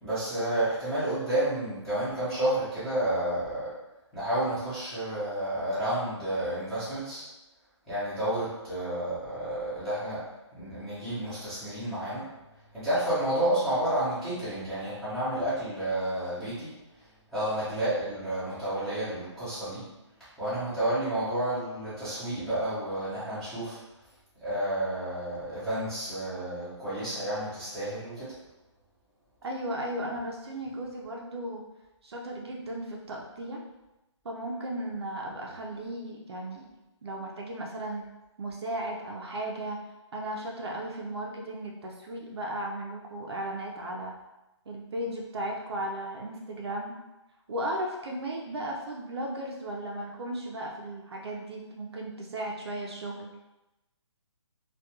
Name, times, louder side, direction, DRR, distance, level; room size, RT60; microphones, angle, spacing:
voice 1, 0.0-3.7 4.1-7.2 7.9-10.2 10.6-12.3 12.7-16.7 17.3-19.9 20.2-23.8 24.4-28.4, right 1 dB, ahead, -15 dB, 0.7 m, -30 dB
voice 2, 29.4-31.6 32.0-33.6 34.2-36.7 37.0-38.1 38.4-39.8 40.1-44.1 44.7-46.9 47.5-53.3, right 1 dB, 55° right, 0 dB, 0.5 m, -35 dB
2.3 x 2.2 x 2.8 m, 0.98 s
hypercardioid pair, 160°, 16 cm